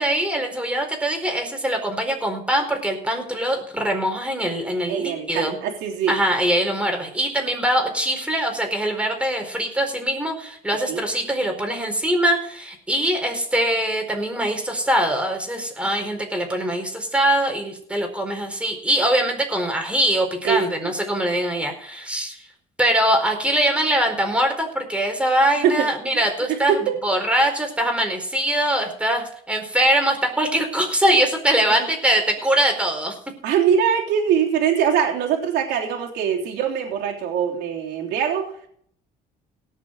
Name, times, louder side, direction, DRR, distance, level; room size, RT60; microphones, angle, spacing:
voice 1, 0.0-5.6 6.1-22.5 22.8-33.1, right 1 dB, 5° right, 3 dB, 4.4 m, -22 dB
voice 2, 4.9-6.1 10.9-11.0 15.8-15.9 20.4-20.9 25.6-25.9 26.1-26.2 26.7-27.0 33.4-38.7, right 8 dB, 85° right, -1 dB, 3.5 m, -22 dB
18.0 x 6.8 x 6.4 m, 0.64 s
cardioid pair, 110°, 17 cm